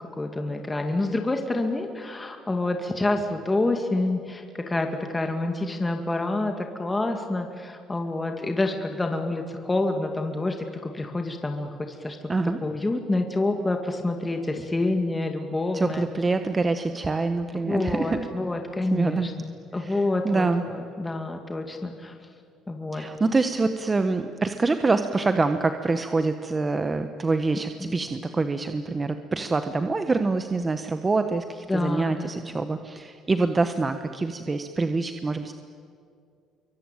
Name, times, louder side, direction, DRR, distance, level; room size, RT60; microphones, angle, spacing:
voice 1, 0.2-10.6 10.8-12.2 12.6-16.1 17.7-22.1 22.7-23.0 31.7-32.5, left 2 dB, 15° left, 4 dB, 2.2 m, -27 dB
voice 2, 15.7-18.2 18.9-19.3 19.8-20.6 22.9-35.5, right 3 dB, 25° right, 8 dB, 1.2 m, -25 dB
26.5 x 24.0 x 9.1 m, 2.3 s
cardioid pair, 100°, 0 cm